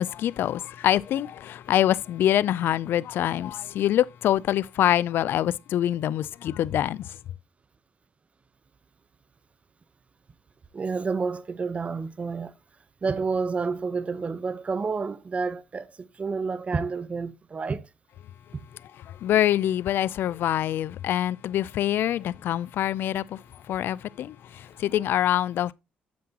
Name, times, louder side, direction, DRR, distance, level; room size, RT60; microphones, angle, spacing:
voice 1, 0.0-7.1 19.1-25.7, left 12 dB, 75° left, 0.4 m, -25 dB
voice 2, 10.7-12.5 13.0-17.8 18.5-18.6, right 4 dB, 35° right, 0.9 m, -29 dB
9.6 x 7.6 x 2.9 m
cardioid pair, 80°, 4 cm